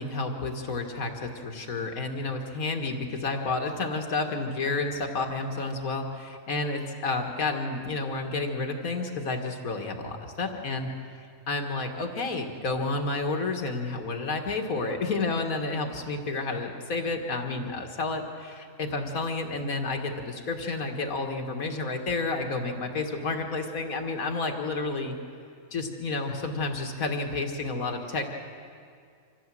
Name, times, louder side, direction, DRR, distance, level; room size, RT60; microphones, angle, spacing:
voice 1, 0.0-10.9 11.2-25.2 25.7-28.2, left 3 dB, 85° left, 3 dB, 2.1 m, -30 dB
25.0 x 15.0 x 7.6 m, 2.3 s
omnidirectional pair, 1.5 m